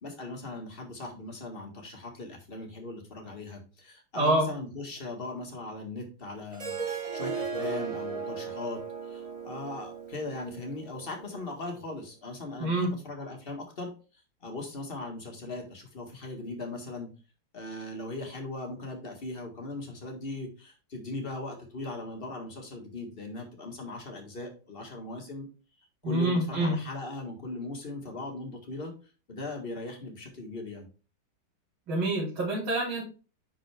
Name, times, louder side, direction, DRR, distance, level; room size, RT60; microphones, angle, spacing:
voice 1, 0.0-8.8 9.1-13.9 14.4-17.1 17.5-25.5 26.0-28.9 29.3-30.9, left 2 dB, 30° left, 2 dB, 1.7 m, -39 dB
voice 2, 4.1-4.5 12.6-12.9 26.0-26.8 31.9-33.0, right 1 dB, 70° right, -7 dB, 3.7 m, -26 dB
Harp, 6.5-11.7, right 5 dB, 50° right, 0.4 m, -37 dB
10.0 x 3.9 x 3.4 m, 0.35 s
omnidirectional pair, 2.3 m